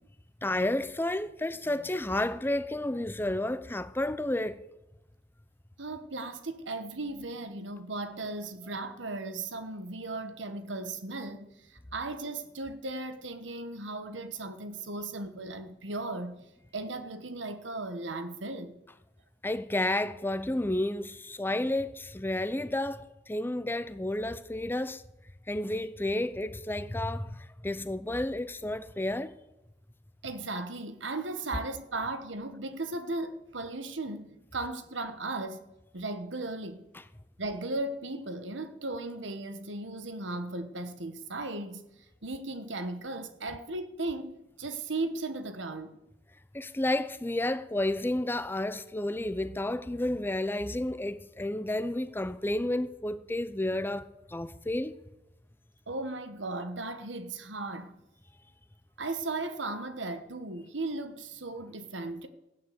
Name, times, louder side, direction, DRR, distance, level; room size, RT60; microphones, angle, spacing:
voice 1, 0.4-4.6 19.4-25.0 25.5-29.3 46.5-54.9, left 1 dB, 10° left, 0.6 m, -31 dB
voice 2, 5.8-16.5 16.7-18.7 27.8-27.9 30.2-35.6 35.9-36.8 37.4-41.8 42.2-45.9 55.9-58.0 59.0-62.3, right 2 dB, 85° right, 1.4 m, -36 dB
14.5 x 9.4 x 8.1 m
head